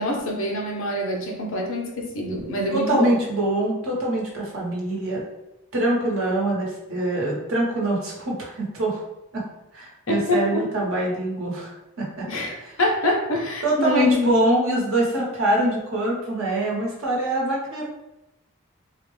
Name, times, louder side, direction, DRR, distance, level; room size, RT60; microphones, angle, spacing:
voice 1, 0.0-3.1 10.1-10.6 12.3-14.4, left 1 dB, 70° left, 0 dB, 0.7 m, -25 dB
voice 2, 2.7-5.2 5.7-9.0 9.3-9.4 9.7-12.3 12.6-12.7 13.6-17.9, right 1 dB, 80° right, -3 dB, 1.0 m, -24 dB
3.6 x 2.1 x 3.1 m, 0.92 s
head